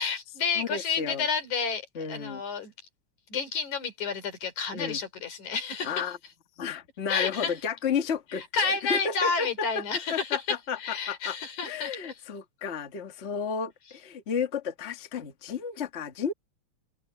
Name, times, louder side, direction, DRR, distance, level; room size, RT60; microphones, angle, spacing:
voice 1, 0.0-2.7 3.3-6.1 7.1-7.5 8.3-12.1, left 5 dB, 85° left, 5.1 m, -30 dB
voice 2, 0.5-1.2 1.9-2.4 4.7-5.0 5.8-6.2 6.6-9.8 10.1-11.4 11.6-16.3, left 6 dB, 30° left, 1.5 m, -32 dB
open air
omnidirectional pair, 3.3 m